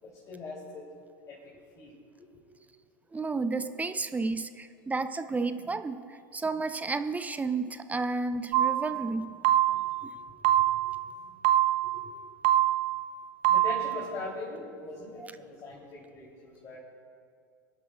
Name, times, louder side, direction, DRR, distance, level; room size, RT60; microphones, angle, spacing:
voice 1, 0.0-0.8 1.3-1.4 1.8-1.9 10.3-10.4 11.2-11.3 11.8-12.1 13.5-16.8, left 3 dB, 30° left, -6 dB, 3.5 m, -41 dB
voice 2, 3.1-9.4 10.0-10.2 15.2-15.3, right 3 dB, 15° right, 11 dB, 0.6 m, -32 dB
sound 1, 8.5-9.0 9.4-10.0 10.4-11.0 11.4-12.0 12.4-13.0 13.4-14.0, right 13 dB, 55° right, 0.7 m, -24 dB
25.5 x 11.5 x 2.5 m, 2.3 s
hypercardioid pair, 80°, 11 cm